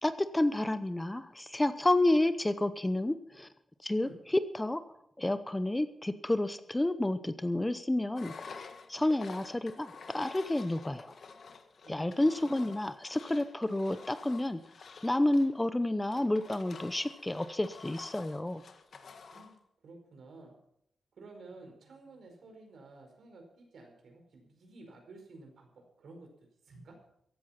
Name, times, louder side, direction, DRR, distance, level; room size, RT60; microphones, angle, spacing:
voice 1, 0.0-3.5 3.8-4.8 5.2-8.3 8.9-11.1 11.9-14.6 15.0-18.6, left 1 dB, 15° left, 12 dB, 0.7 m, -30 dB
Engine, 8.2-19.6, left 5 dB, 60° left, 1.6 m, -50 dB
voice 2, 11.8-12.7 19.3-20.6 21.2-27.0, right 2 dB, 75° right, 3 dB, 4.8 m, -53 dB
15.0 x 11.5 x 5.8 m, 0.73 s
wide cardioid pair, 110°, 0 cm